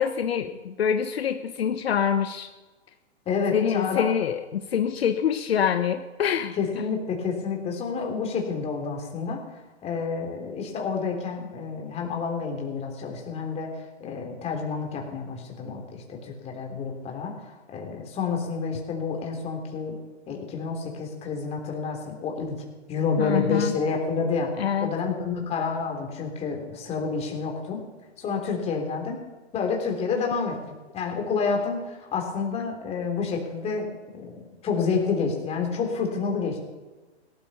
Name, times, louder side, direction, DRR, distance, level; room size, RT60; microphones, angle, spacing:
voice 1, 0.0-2.5 3.5-6.8 23.2-23.8 24.6-24.9, left 8 dB, 65° left, 7 dB, 1.1 m, -25 dB
voice 2, 3.2-4.0 6.6-9.4 9.8-13.7 14.0-20.0 20.3-22.6 22.9-24.5 24.8-27.8 28.2-29.2 29.5-30.6 30.9-33.9 34.1-36.6, left 5 dB, 20° left, 1 dB, 3.4 m, -29 dB
17.5 x 13.0 x 5.6 m, 1.2 s
hypercardioid pair, 135°, 34 cm